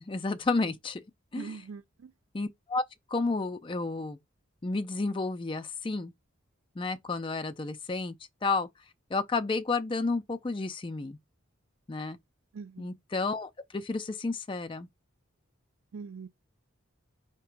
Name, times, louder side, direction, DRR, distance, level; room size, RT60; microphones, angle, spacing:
voice 1, 0.0-1.0 1.3-1.6 2.3-2.8 3.1-4.2 4.6-6.1 6.8-8.1 8.4-8.7 9.1-11.2 11.9-12.2 12.8-14.9, left 3 dB, 25° left, 0.4 m, -31 dB
voice 2, 1.3-2.1 12.5-12.9 15.9-16.3, right 5 dB, 80° right, 0.4 m, -42 dB
3.5 x 2.9 x 4.5 m
head